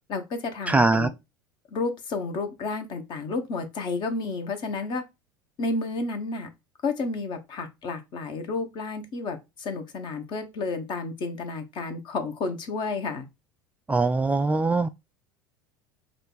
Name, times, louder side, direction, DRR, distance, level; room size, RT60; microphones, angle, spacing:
voice 1, 0.1-1.1 1.7-5.0 5.6-6.5 6.8-13.3, left 3 dB, 45° left, 1.2 m, -31 dB
voice 2, 0.7-1.1 13.9-14.9, right 3 dB, 10° right, 0.3 m, -22 dB
5.2 x 2.5 x 3.9 m
figure-of-eight pair, 75°, 11 cm